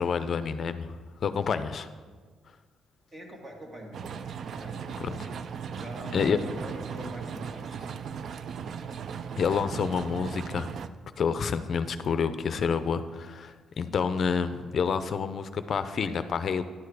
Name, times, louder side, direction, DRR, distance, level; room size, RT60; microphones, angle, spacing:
voice 1, 0.0-1.9 5.0-5.2 6.1-6.4 9.4-10.7 11.2-16.6, left 6 dB, 55° left, 11 dB, 0.4 m, -28 dB
voice 2, 3.1-7.9, right 1 dB, 35° right, 0 dB, 1.9 m, -43 dB
sound 1, 3.9-10.9, right 7 dB, 60° right, 0.3 m, -37 dB
11.0 x 4.7 x 4.7 m, 1.5 s
cardioid pair, 90°, 0 cm